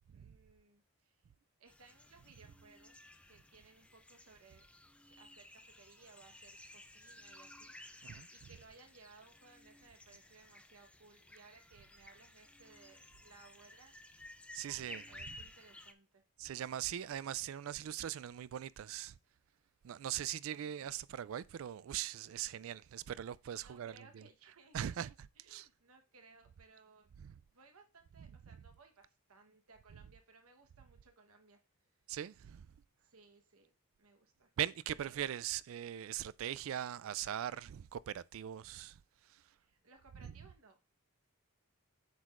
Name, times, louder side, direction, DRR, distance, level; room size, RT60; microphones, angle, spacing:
voice 1, 0.1-1.2 1.6-3.0 3.3-4.7 5.0-14.0 14.7-16.2 23.6-25.0 25.4-27.1 27.5-31.6 33.0-33.7 34.0-34.5 34.9-35.1 39.5-40.8, right 4 dB, 80° right, 1.1 m, -62 dB
sound 1, 1.7-15.9, left 1 dB, 5° left, 0.4 m, -56 dB
voice 2, 8.0-8.6 14.5-15.5 16.4-19.2 19.8-25.7 27.2-27.4 28.2-28.6 29.9-30.1 32.1-32.7 34.6-39.4 40.2-40.5, right 10 dB, 65° right, 0.3 m, -41 dB
8.0 x 6.3 x 2.5 m
head